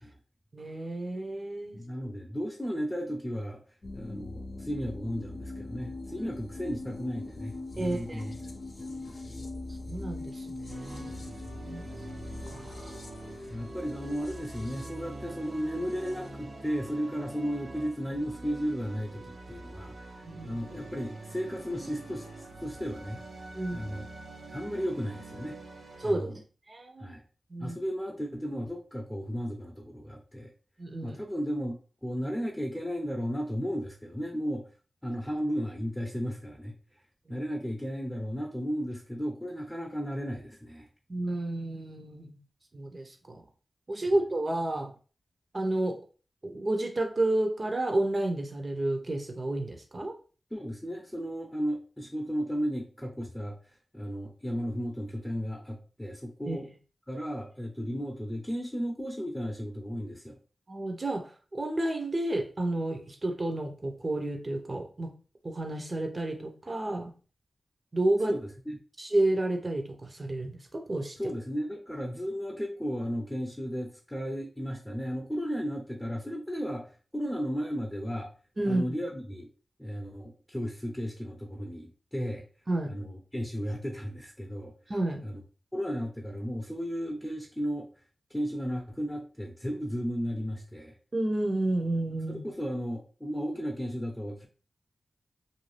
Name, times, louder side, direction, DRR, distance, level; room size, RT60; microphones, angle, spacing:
voice 1, 0.5-1.8 6.2-6.3 7.8-8.2 9.9-11.2 11.6-11.8 12.5-12.9 20.2-20.6 23.5-23.9 26.0-26.3 26.7-27.1 27.5-27.8 30.8-31.2 37.3-37.4 41.1-42.4 42.7-43.4 43.9-44.9 45.5-46.0 46.4-50.1 56.5-56.6 60.7-65.1 65.4-67.1 67.9-68.3 69.0-71.2 78.6-79.0 82.7-82.9 84.9-85.2 91.1-92.4, right 1 dB, 50° right, 4 dB, 0.8 m, -31 dB
voice 2, 1.7-3.6 3.9-8.3 8.8-9.5 11.1-11.2 13.5-19.9 20.4-22.3 22.6-23.2 23.7-24.1 24.5-25.6 26.0-26.4 27.0-27.2 27.6-30.5 31.0-31.7 32.0-34.7 35.0-36.7 37.3-40.9 50.5-53.6 53.9-56.7 57.1-60.4 68.2-68.4 68.7-68.8 71.2-78.3 78.6-79.5 79.8-82.5 82.9-84.7 85.2-85.4 85.7-87.9 88.3-90.9 92.3-94.5, equal, 10° left, 0 dB, 0.7 m, -34 dB
sound 1, 3.8-16.3, left 2 dB, 60° left, 0.6 m, -42 dB
sound 2, 10.7-26.1, right 2 dB, 80° right, 0.6 m, -45 dB
2.7 x 2.3 x 3.2 m, 0.37 s
cardioid pair, 40°, 0 cm